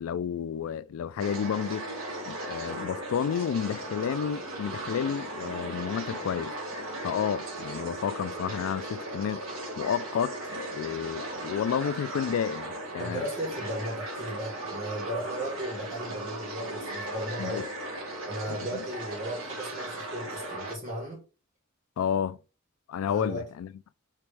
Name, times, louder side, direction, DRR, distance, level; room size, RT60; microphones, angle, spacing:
voice 1, 0.0-1.9 2.3-6.5 7.0-13.3 17.4-17.6 18.5-18.8 22.0-22.4 22.9-23.7, left 8 dB, 85° left, 0.3 m, -31 dB
sound 1, 1.2-20.8, right 1 dB, 85° right, 1.5 m, -37 dB
voice 2, 13.0-17.7 18.3-21.2 23.1-23.5, right 1 dB, 40° right, 1.8 m, -36 dB
4.7 x 3.0 x 3.2 m
head